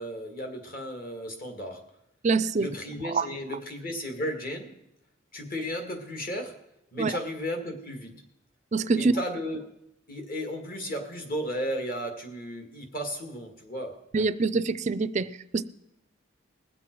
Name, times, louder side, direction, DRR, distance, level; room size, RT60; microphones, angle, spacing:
voice 1, 0.0-1.9 2.6-4.7 5.3-6.6 6.9-8.1 8.9-9.6 10.1-14.0, equal, 45° left, 2.0 m, -34 dB
voice 2, 2.2-2.7 3.0-3.3 7.0-7.2 8.7-9.1 14.1-15.6, right 4 dB, 35° right, 0.4 m, -25 dB
20.0 x 7.7 x 4.6 m
head